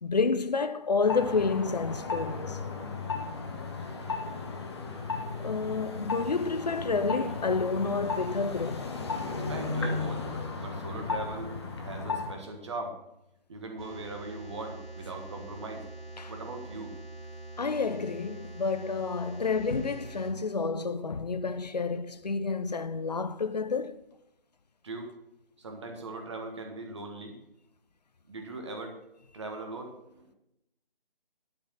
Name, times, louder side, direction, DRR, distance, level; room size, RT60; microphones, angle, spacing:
voice 1, 0.0-2.6 5.4-8.9 16.2-16.3 17.6-24.0, left 4 dB, 45° left, 0.6 m, -29 dB
sound 1, 1.0-12.4, left 4 dB, 25° left, 1.2 m, -35 dB
voice 2, 9.5-10.3 10.6-13.0 13.5-15.8 16.3-17.0 24.8-25.1 25.6-27.4 28.3-29.0 29.3-30.3, right 2 dB, 30° right, 1.5 m, -40 dB
sound 2, 13.8-20.3, right 2 dB, 80° left, 2.6 m, -44 dB
11.5 x 5.0 x 7.5 m
figure-of-eight pair, 155°, 29 cm